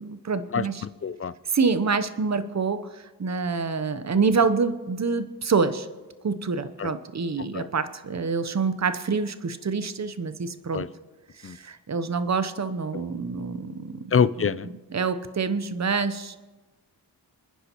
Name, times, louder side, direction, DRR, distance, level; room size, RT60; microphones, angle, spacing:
voice 1, 0.0-0.8 1.5-5.9 6.2-10.8 11.4-14.1 14.9-16.4, right 4 dB, 40° right, 12 dB, 0.9 m, -26 dB
voice 2, 0.5-1.3 6.8-6.9 7.5-7.7 10.7-10.9 11.4-11.6 12.9-13.0 14.1-14.7, left 6 dB, 35° left, 16 dB, 0.5 m, -25 dB
27.0 x 10.0 x 3.0 m, 1.3 s
cardioid pair, 60°, 41 cm